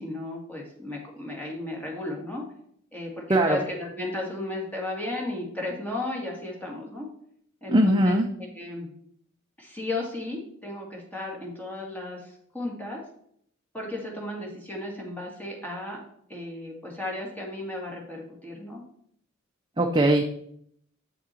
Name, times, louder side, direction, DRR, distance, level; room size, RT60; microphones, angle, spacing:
voice 1, 0.0-2.4 2.9-7.1 7.6-8.2 8.5-8.9 9.6-13.0 13.7-16.0 16.3-18.8, left 2 dB, 10° left, -2 dB, 2.2 m, -34 dB
voice 2, 7.7-8.3 19.8-20.3, right 1 dB, 20° right, 3 dB, 0.6 m, -20 dB
8.4 x 6.3 x 4.5 m, 0.68 s
head